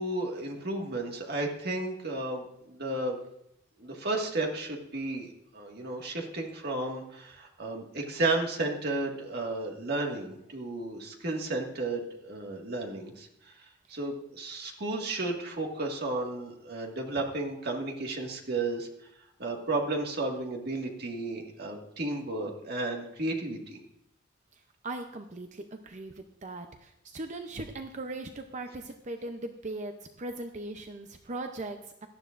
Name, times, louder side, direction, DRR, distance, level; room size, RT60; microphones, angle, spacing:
voice 1, 0.0-3.2 3.8-13.3 13.9-18.9 19.4-23.8, right 2 dB, 55° right, 1 dB, 1.9 m, -33 dB
voice 2, 24.8-32.1, right 2 dB, 40° right, 6 dB, 0.7 m, -39 dB
17.5 x 12.5 x 2.5 m, 0.78 s
head